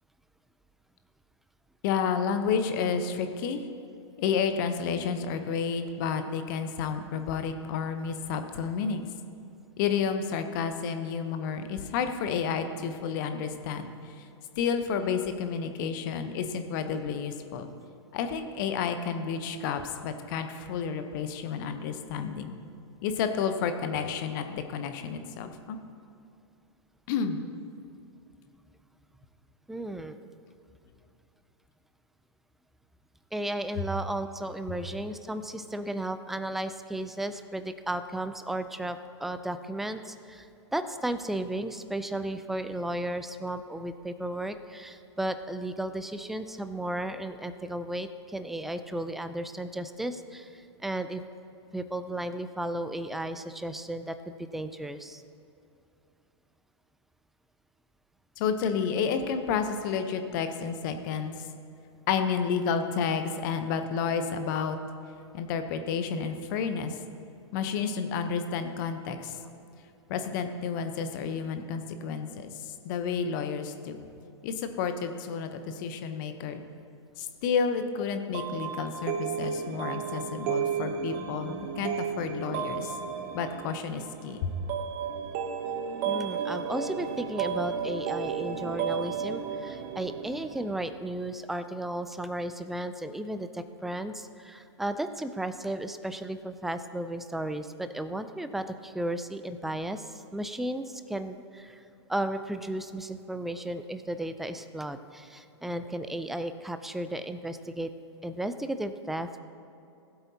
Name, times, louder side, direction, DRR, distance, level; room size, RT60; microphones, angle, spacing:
voice 1, 1.8-3.6 4.2-9.1 9.8-14.1 14.6-17.7 18.1-22.5 23.0-25.8 27.1-27.4 58.4-61.3 62.1-64.8 65.3-67.0 67.5-69.4 70.1-74.0 74.4-76.6 77.2-83.0 83.3-84.5, left 6 dB, 45° left, 8 dB, 0.8 m, -30 dB
voice 2, 29.7-30.2 33.3-51.2 51.7-55.2 74.0-74.1 86.0-101.8 102.1-107.9 108.2-109.4, right 1 dB, ahead, 10 dB, 0.3 m, -34 dB
sound 1, 78.3-90.9, right 7 dB, 40° right, 0.8 m, -33 dB
16.5 x 7.9 x 2.8 m, 2.7 s
figure-of-eight pair, 110°, 15 cm